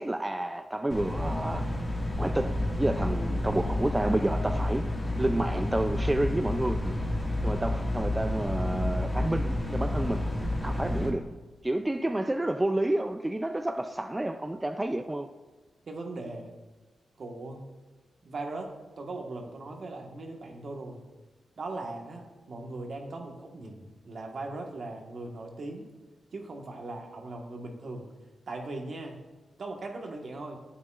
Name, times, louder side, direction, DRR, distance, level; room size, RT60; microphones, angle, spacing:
voice 1, 0.0-1.6 2.2-4.8 5.2-7.0 7.4-10.2 10.6-11.3 11.6-15.3, right 1 dB, 15° right, 7 dB, 0.4 m, -29 dB
sound 1, 0.9-11.1, left 1 dB, 15° left, 1.9 m, -30 dB
voice 2, 15.9-16.5 17.2-17.6 18.2-18.7 19.0-21.0 21.6-25.9 26.3-28.1 28.5-29.2 29.6-30.6, right 2 dB, 60° right, 2 dB, 1.5 m, -39 dB
11.5 x 8.3 x 2.5 m, 1.3 s
cardioid pair, 75°, 0 cm